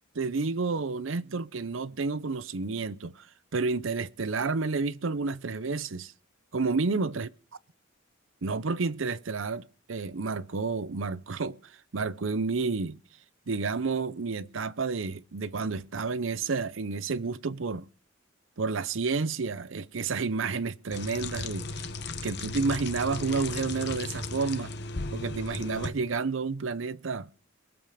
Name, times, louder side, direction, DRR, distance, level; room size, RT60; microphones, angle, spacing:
voice 1, 0.1-3.3 3.5-6.1 6.5-7.3 8.4-13.0 13.5-17.8 18.6-21.7 22.2-24.7 25.1-27.3, right 4 dB, 75° right, 0.7 m, -30 dB
sound 1, 20.9-25.9, left 3 dB, 55° left, 1.1 m, -36 dB
22.5 x 8.0 x 5.0 m
head